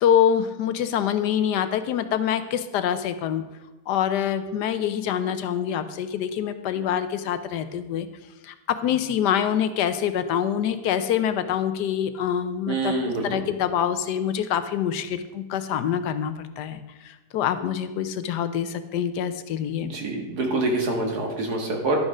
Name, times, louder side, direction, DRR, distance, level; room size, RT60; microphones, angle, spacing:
voice 1, 0.0-3.4 3.9-8.1 8.4-13.0 13.2-19.9, left 9 dB, 85° left, 11 dB, 1.3 m, -25 dB
voice 2, 12.7-13.2 19.8-22.0, right 2 dB, 70° right, 2 dB, 2.1 m, -26 dB
11.5 x 6.3 x 5.0 m, 1.1 s
omnidirectional pair, 1.8 m